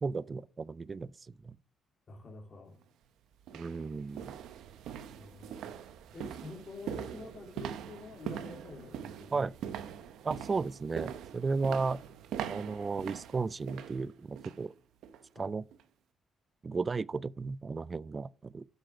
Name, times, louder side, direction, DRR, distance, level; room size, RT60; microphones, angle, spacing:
voice 1, 0.0-1.1 1.4-1.6 3.5-4.4 9.3-9.5 10.2-12.0 12.5-14.7 15.4-15.7 16.6-18.6, right 4 dB, 35° right, 0.4 m, -34 dB
voice 2, 2.1-2.8 5.2-5.6 6.1-9.5 15.3-15.5, left 3 dB, 45° left, 3.1 m, -48 dB
sound 1, 2.7-2.8 3.4-14.7 15.0-15.3 15.7-15.8, right 9 dB, 85° right, 0.8 m, -42 dB
8.0 x 6.1 x 4.9 m
cardioid pair, 90°, 0 cm